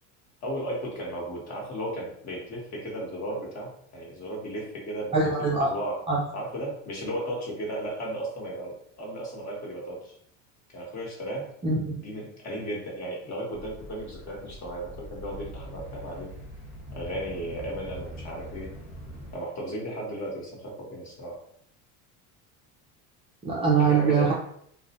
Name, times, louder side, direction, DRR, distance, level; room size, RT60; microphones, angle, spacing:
voice 1, 0.4-5.1 5.5-6.0 6.3-10.2 10.7-11.5 12.0-16.3 16.9-18.7 19.3-21.3 23.8-24.3, right 1 dB, 40° left, -2 dB, 1.1 m, -35 dB
voice 2, 5.1-5.7 6.1-6.2 11.6-11.9 23.4-24.3, right 4 dB, 15° right, -5 dB, 0.3 m, -23 dB
sound 1, 13.5-19.3, equal, 20° left, 0.9 m, -42 dB
2.5 x 2.0 x 2.9 m, 0.68 s
supercardioid pair, 110°, 41 cm